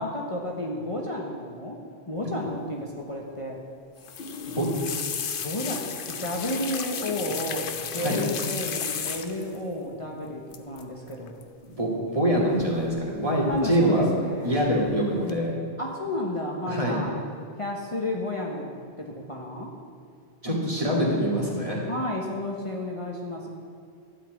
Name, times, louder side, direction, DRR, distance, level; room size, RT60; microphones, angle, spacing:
voice 1, 0.0-3.6 5.4-11.4 13.5-14.6 15.8-17.2 17.6-19.7 21.9-23.5, left 1 dB, 30° left, -1 dB, 1.1 m, -32 dB
sound 1, 4.0-9.6 10.5-10.8 11.1-11.4 12.6-13.2 13.5-14.1 14.5-14.9 15.3-15.4, left 7 dB, 60° left, 0.9 m, -34 dB
voice 2, 11.6-14.1 14.4-15.5 16.7-17.0 20.4-21.8, equal, 35° right, -3 dB, 2.3 m, -24 dB
12.5 x 5.8 x 8.2 m, 2.3 s
omnidirectional pair, 1.0 m